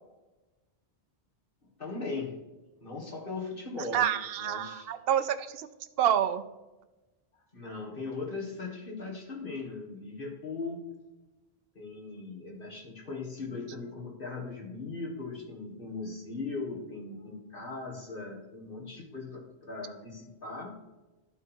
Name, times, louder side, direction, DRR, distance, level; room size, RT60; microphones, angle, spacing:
voice 1, 1.8-2.4 2.8-4.1 4.4-4.9 7.5-10.9 11.7-20.8, left 3 dB, 60° left, -1 dB, 2.0 m, -39 dB
voice 2, 3.9-5.7 6.0-6.4, right 10 dB, 70° right, 11 dB, 0.8 m, -27 dB
12.0 x 4.5 x 4.4 m, 1.1 s
omnidirectional pair, 1.0 m